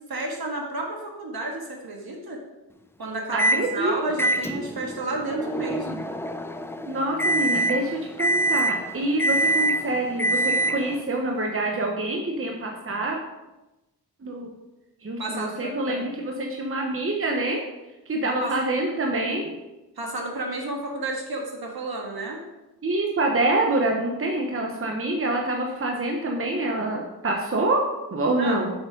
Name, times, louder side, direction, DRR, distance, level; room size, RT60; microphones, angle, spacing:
voice 1, 0.1-2.4 3.0-6.1 15.2-16.0 18.2-18.5 20.0-22.4 28.4-28.6, right 2 dB, 65° right, 1 dB, 1.7 m, -31 dB
voice 2, 3.3-4.0 6.9-13.2 14.2-14.5 15.0-17.6 18.1-19.5 22.8-27.8 28.1-28.7, right 2 dB, 35° right, 1 dB, 0.9 m, -26 dB
Microwave oven, 3.4-3.7 4.2-11.0, right 1 dB, 5° left, 0.3 m, -25 dB
6.5 x 6.1 x 5.1 m, 1.0 s
wide cardioid pair, 140°, 40 cm